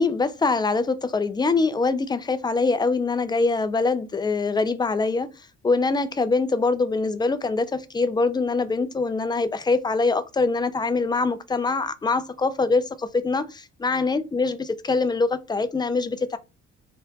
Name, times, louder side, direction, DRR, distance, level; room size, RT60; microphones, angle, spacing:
voice 1, 0.0-5.3 5.6-14.6 14.8-16.4, left 3 dB, 15° left, 0.4 m, -23 dB
2.9 x 2.2 x 3.4 m
cardioid pair, 90°, 30 cm